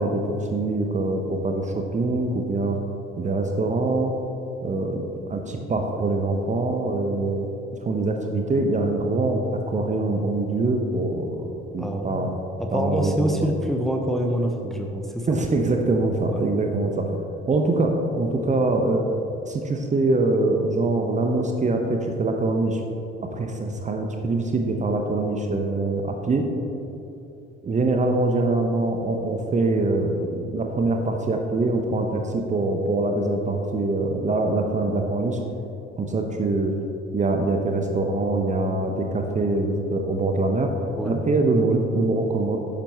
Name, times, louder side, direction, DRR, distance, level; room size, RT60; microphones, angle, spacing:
voice 1, 0.0-2.8 3.2-4.1 4.6-7.5 7.8-12.3 12.7-13.5 15.3-19.0 19.5-22.8 23.3-26.5 27.6-35.4 36.0-36.7 37.1-40.7 41.0-42.6, right 2 dB, 25° right, 3 dB, 1.0 m, -24 dB
voice 2, 11.8-12.3 12.6-15.4 16.3-16.5 40.9-41.2, equal, ahead, 2 dB, 1.0 m, -26 dB
12.0 x 10.0 x 3.0 m, 2.8 s
figure-of-eight pair, 55°, 31 cm